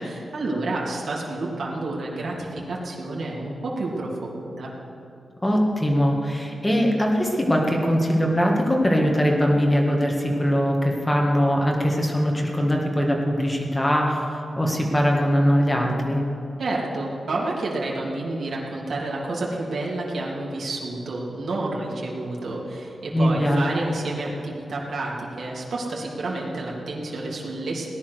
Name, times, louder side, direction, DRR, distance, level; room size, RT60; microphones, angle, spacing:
voice 1, 0.0-4.7 16.6-27.9, right 2 dB, 65° right, -3 dB, 2.9 m, -29 dB
voice 2, 5.4-16.2 23.1-23.6, equal, 10° left, 0 dB, 2.0 m, -21 dB
18.5 x 10.5 x 6.5 m, 2.8 s
wide cardioid pair, 150°, 0 cm